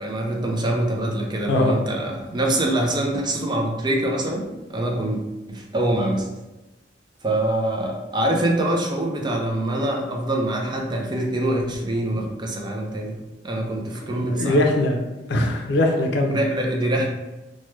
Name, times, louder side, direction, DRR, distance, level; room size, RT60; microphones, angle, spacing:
voice 1, 0.0-5.2 5.5-6.3 7.2-14.6 16.3-17.1, right 1 dB, 25° right, 1 dB, 0.5 m, -24 dB
voice 2, 1.5-1.8 5.0-5.1 14.0-15.0 15.3-16.4, left 1 dB, 65° left, 3 dB, 0.5 m, -21 dB
3.0 x 2.1 x 3.1 m, 1.1 s
head